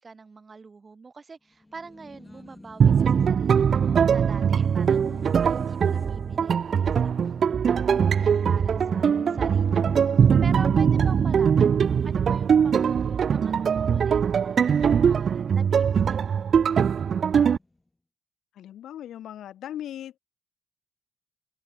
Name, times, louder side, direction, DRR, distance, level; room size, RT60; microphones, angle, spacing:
voice 1, 0.0-5.1 5.4-7.2 7.7-14.6 15.0-17.1, right 4 dB, 30° right, 4.8 m, -44 dB
Race car auto racing, 1.5-17.8, left 2 dB, 15° left, 5.5 m, -47 dB
sound 1, 2.8-17.6, right 7 dB, 50° right, 0.4 m, -21 dB
voice 2, 5.1-5.5 18.5-20.2, left 11 dB, 75° left, 3.2 m, -40 dB
open air
cardioid pair, 90°, 0 cm